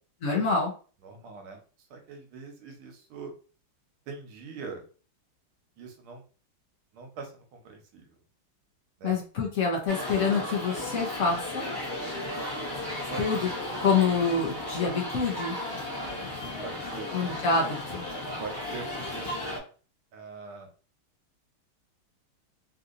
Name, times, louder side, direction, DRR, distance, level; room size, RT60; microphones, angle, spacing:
voice 1, 0.2-0.7 9.0-11.7 13.2-13.5 13.8-15.6 17.1-18.0, left 4 dB, 70° left, -1 dB, 0.7 m, -26 dB
voice 2, 1.0-1.6 1.9-3.3 4.1-4.8 5.8-6.2 6.9-8.1 9.0-9.2 13.1-13.6 16.0-16.3 16.6-17.1 18.4-19.6 20.1-20.7, right 4 dB, 80° right, 3 dB, 1.7 m, -42 dB
sound 1, 9.9-19.6, left 1 dB, 35° left, 1.2 m, -35 dB
4.0 x 2.7 x 2.5 m, 0.37 s
omnidirectional pair, 2.4 m